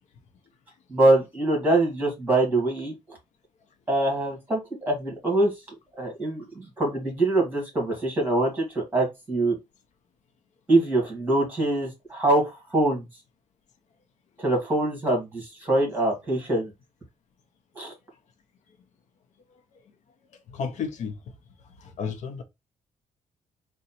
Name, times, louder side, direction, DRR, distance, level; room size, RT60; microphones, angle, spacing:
voice 1, 0.9-2.9 3.9-4.6 4.9-5.5 6.0-9.6 10.7-13.0 14.4-16.7 17.8-17.9, right 2 dB, 15° right, 2.1 m, -24 dB
voice 2, 20.5-21.2 21.8-22.4, left 6 dB, 70° left, 0.7 m, -32 dB
3.9 x 2.2 x 4.3 m
cardioid pair, 150°, 13 cm